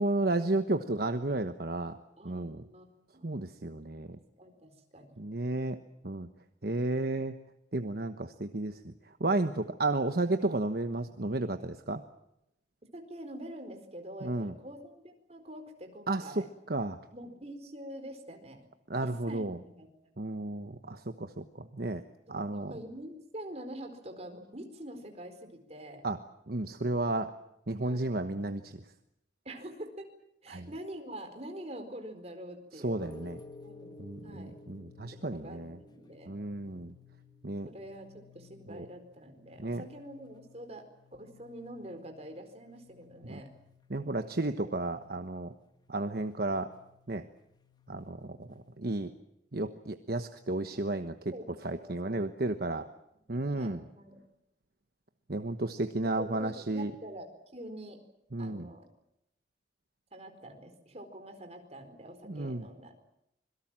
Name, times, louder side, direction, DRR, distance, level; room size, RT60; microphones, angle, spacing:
voice 1, 0.0-2.0 2.2-2.6 3.2-4.2 5.2-5.8 6.0-6.3 6.6-7.3 7.7-8.9 9.2-12.0 14.2-14.5 16.1-17.0 18.9-19.6 20.2-22.0 22.3-22.7 26.0-26.2 26.5-27.3 27.7-28.7 30.5-30.7 32.8-33.4 34.0-35.8 36.3-36.9 37.4-37.7 38.7-38.8 39.6-39.8 43.2-43.4 43.9-45.5 45.9-46.7 47.1-47.2 47.9-48.5 48.8-49.1 49.5-51.1 51.6-52.9 53.3-53.8 55.3-56.9 58.3-58.7 62.3-62.7, right 2 dB, 55° right, 8 dB, 1.2 m, -32 dB
voice 2, 2.2-2.8 3.1-3.4 4.1-5.2 12.9-16.5 17.1-18.7 19.0-19.9 22.3-26.0 27.8-28.1 29.4-30.1 30.4-33.1 33.6-34.5 35.2-36.3 37.6-40.8 41.1-43.5 50.7-50.8 51.3-52.8 53.3-54.2 56.2-58.0 58.4-58.9 60.1-63.0, right 1 dB, 35° right, 6 dB, 4.4 m, -46 dB
sound 1, 33.0-48.9, left 3 dB, 25° left, 1.6 m, -56 dB
26.0 x 22.5 x 7.5 m, 0.82 s
head